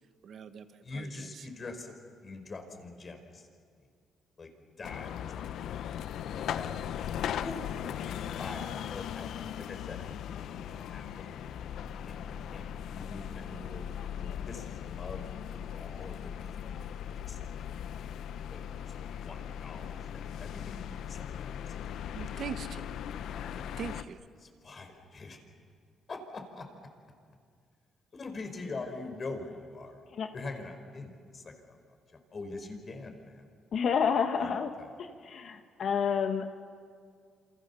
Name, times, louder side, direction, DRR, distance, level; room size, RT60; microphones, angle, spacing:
voice 1, 0.2-1.5 22.1-22.9 23.8-24.2, right 7 dB, 60° right, 10 dB, 1.4 m, -41 dB
voice 2, 0.8-1.9 2.2-3.5 4.4-4.5 4.8-5.8 6.3-6.9 7.3-7.6 8.4-9.3 9.7-10.1 10.9-11.7 12.1-12.2 12.5-12.6 12.9-13.9 14.1-15.3 15.7-16.8 17.2-17.4 18.5-18.7 19.2-21.5 23.3-23.7 24.6-25.4 26.1-26.6 28.1-30.0 30.3-31.8 32.3-33.4 34.4-34.5, left 3 dB, 40° left, 5 dB, 4.8 m, -43 dB
sound 1, 4.8-24.0, left 9 dB, 75° left, 0.8 m, -38 dB
voice 3, 33.7-34.7 35.0-36.5, left 6 dB, 60° left, 6 dB, 1.6 m, -29 dB
28.0 x 27.5 x 7.1 m, 2.1 s
cardioid pair, 90°, 0 cm